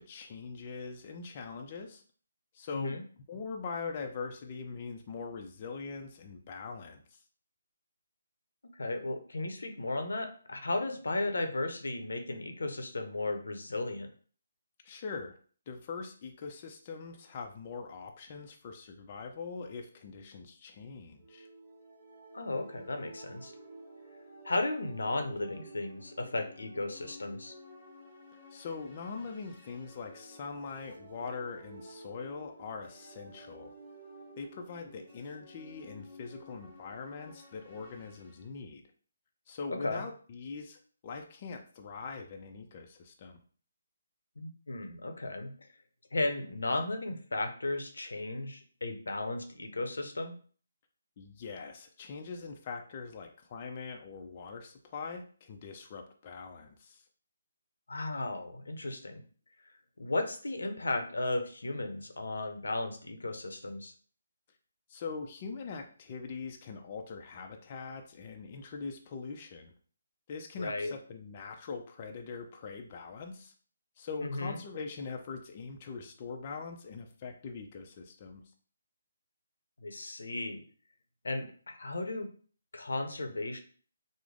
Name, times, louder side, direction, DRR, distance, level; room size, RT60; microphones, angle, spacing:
voice 1, 0.0-2.0 2.5-3.0 3.3-7.2 14.8-15.4 15.7-21.5 28.5-33.7 34.4-38.8 39.5-43.4 51.2-57.0 64.9-69.7 70.3-73.5 74.0-78.4, left 4 dB, 35° left, 3 dB, 0.4 m, -42 dB
voice 2, 8.8-14.1 22.3-23.5 24.4-27.5 39.7-40.0 44.4-45.5 46.1-50.3 57.9-59.2 60.0-63.9 70.6-70.9 74.2-74.6 79.8-80.6 81.2-82.3 82.7-83.6, left 2 dB, 85° left, 6 dB, 0.6 m, -35 dB
sound 1, 21.2-38.5, right 1 dB, 15° left, 1.2 m, -52 dB
3.3 x 2.0 x 3.6 m, 0.43 s
hypercardioid pair, 155°, 0 cm